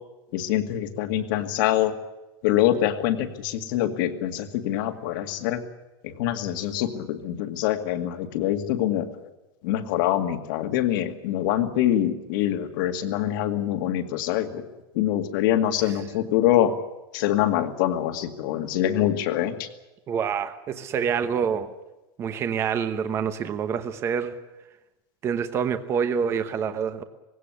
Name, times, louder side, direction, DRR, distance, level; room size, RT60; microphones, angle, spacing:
voice 1, 0.3-1.9 2.4-5.6 6.0-9.1 9.6-14.6 15.0-16.7 17.1-19.7, left 12 dB, 55° left, 7 dB, 2.2 m, -24 dB
voice 2, 20.1-21.7 22.2-24.4 25.2-27.0, right 7 dB, 20° right, 10 dB, 1.1 m, -26 dB
20.5 x 17.0 x 9.8 m, 1.0 s
supercardioid pair, 180°, 13 cm